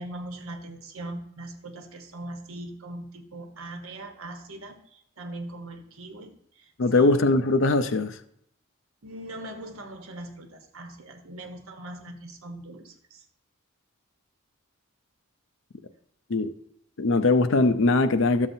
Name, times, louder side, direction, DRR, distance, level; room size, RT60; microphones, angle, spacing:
voice 1, 0.0-7.2 9.0-13.2, right 1 dB, 85° right, 1.1 m, -40 dB
voice 2, 6.8-8.2 16.3-16.5 17.0-18.5, left 2 dB, 65° left, 0.5 m, -21 dB
13.0 x 7.2 x 2.7 m
head